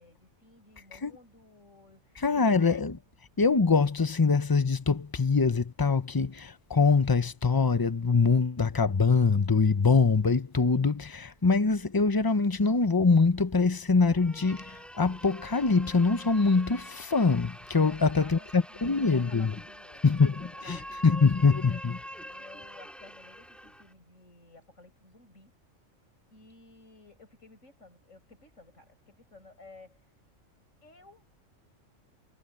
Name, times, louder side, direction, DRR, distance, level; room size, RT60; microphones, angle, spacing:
voice 1, 0.0-2.4 17.6-25.6 26.3-30.1 30.8-31.3, left 2 dB, 65° left, 7.5 m, -54 dB
voice 2, 2.2-3.0 3.4-19.5 20.0-20.4 20.7-20.8 21.0-21.9, left 4 dB, 20° left, 0.7 m, -24 dB
sound 1, 14.1-23.9, equal, ahead, 3.6 m, -45 dB
omnidirectional pair, 1.4 m